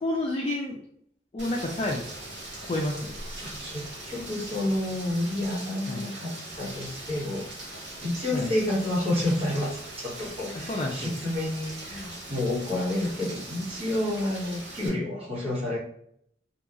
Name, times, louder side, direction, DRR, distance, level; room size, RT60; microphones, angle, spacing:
voice 1, 0.0-0.8 1.3-2.0 2.7-3.1 5.9-6.0 8.3-8.5 10.5-11.1, left 1 dB, 30° left, 0 dB, 0.3 m, -29 dB
Rain, 1.4-14.9, right 1 dB, 65° right, 1.0 m, -41 dB
voice 2, 3.4-7.5 8.0-15.8, left 1 dB, 30° right, -7 dB, 1.1 m, -29 dB
2.8 x 2.3 x 2.4 m, 0.70 s
head